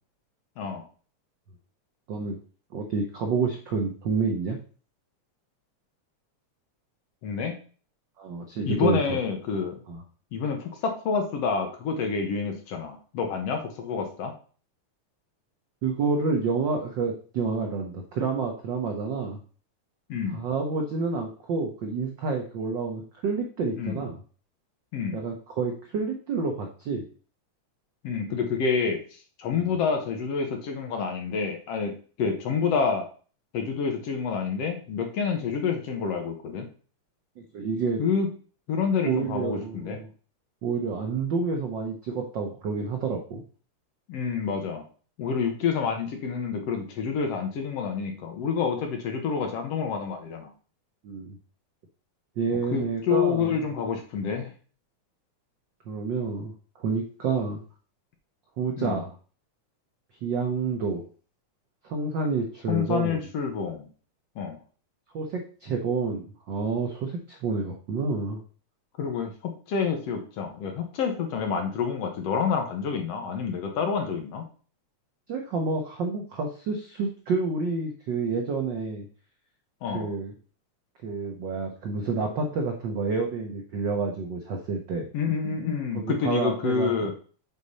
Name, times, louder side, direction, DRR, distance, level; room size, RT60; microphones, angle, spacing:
voice 1, 2.1-2.4 2.7-4.6 8.2-9.2 9.9-10.0 15.8-19.4 20.3-24.2 25.1-27.0 29.6-29.8 37.4-38.0 39.0-40.1 40.6-43.4 51.0-51.4 52.4-53.6 55.9-56.5 56.8-57.6 58.6-59.1 60.2-61.0 61.8-63.2 65.1-68.4 75.3-79.1 79.9-80.3 81.0-85.1 86.1-87.0, right 4 dB, 90° right, 3 dB, 1.0 m, -29 dB
voice 2, 7.2-7.5 8.7-9.7 10.3-14.3 20.1-20.4 23.8-24.0 24.9-25.2 28.0-31.9 32.2-33.0 33.5-36.7 38.0-38.3 38.7-40.0 44.1-44.8 45.2-50.5 52.7-54.5 58.8-59.0 62.7-63.9 64.4-64.6 69.0-74.4 79.8-80.1 85.1-87.1, left 6 dB, 65° left, 4 dB, 2.0 m, -28 dB
6.7 x 4.0 x 5.4 m, 0.40 s
omnidirectional pair, 3.4 m